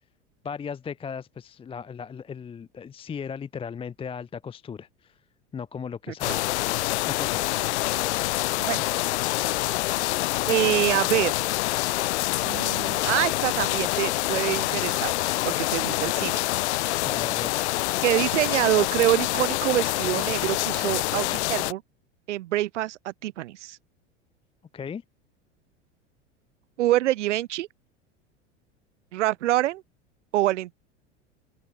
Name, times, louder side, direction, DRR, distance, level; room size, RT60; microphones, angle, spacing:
voice 1, 0.4-5.1 5.5-6.6 7.1-7.4 17.0-17.6 24.7-25.0, left 6 dB, 15° left, 0.6 m, -36 dB
sound 1, 6.2-21.7, left 19 dB, 70° left, 0.5 m, -26 dB
voice 2, 10.5-11.3 12.4-15.1 15.4-16.4 18.0-21.8 22.3-23.8 26.8-27.7 29.1-29.8 30.3-30.7, right 15 dB, 80° right, 0.6 m, -25 dB
open air
hypercardioid pair, 85°, 36 cm